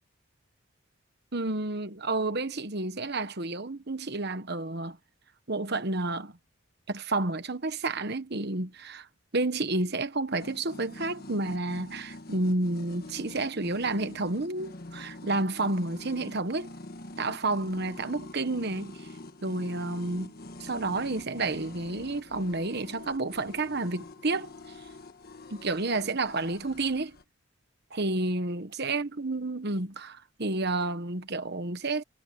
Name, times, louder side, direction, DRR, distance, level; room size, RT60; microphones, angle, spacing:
voice 1, 1.3-5.0 5.5-6.4 6.9-9.1 9.3-16.7 17.2-19.1 19.4-20.3 20.6-24.5 25.5-27.2 27.9-32.0, right 2 dB, 50° right, 1.3 m, -30 dB
sound 1, 10.4-27.2, left 2 dB, 45° left, 1.5 m, -45 dB
head